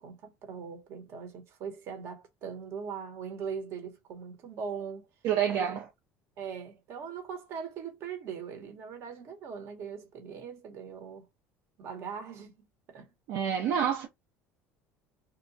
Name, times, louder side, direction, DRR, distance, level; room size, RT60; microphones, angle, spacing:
voice 1, 0.0-5.1 5.5-5.8 6.4-11.3 11.8-12.5 12.9-13.1, right 6 dB, 55° right, 1.0 m, -40 dB
voice 2, 5.2-5.9 13.3-14.1, right 8 dB, 70° right, 0.5 m, -28 dB
2.8 x 2.1 x 2.5 m
cardioid pair, 125°, 5 cm